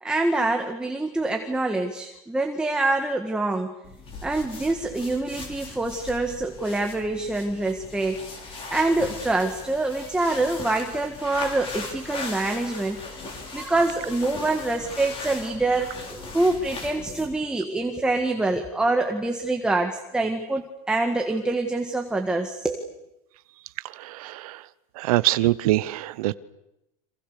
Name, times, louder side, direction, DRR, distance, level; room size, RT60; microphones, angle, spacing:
voice 1, 0.0-3.7 4.2-13.0 13.5-22.9, right 2 dB, 5° right, 4 dB, 1.8 m, -25 dB
sound 1, 3.8-17.4, left 3 dB, 30° left, 6.3 m, -38 dB
voice 2, 23.8-24.7 24.9-26.4, right 17 dB, 80° right, 16 dB, 1.0 m, -24 dB
30.0 x 26.5 x 6.8 m, 0.88 s
supercardioid pair, 145°, 18 cm